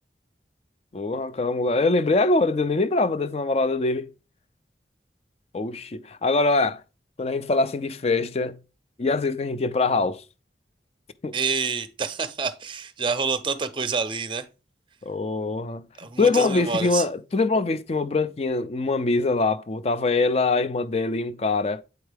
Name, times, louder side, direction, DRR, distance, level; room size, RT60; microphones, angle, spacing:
voice 1, 0.9-4.1 5.5-6.8 7.2-8.6 9.0-10.2 11.2-11.3 15.0-15.9 16.2-21.8, left 3 dB, 35° left, 0.4 m, -23 dB
voice 2, 11.3-14.5 16.0-17.0, right 5 dB, 25° right, 0.6 m, -27 dB
8.1 x 4.5 x 3.3 m
head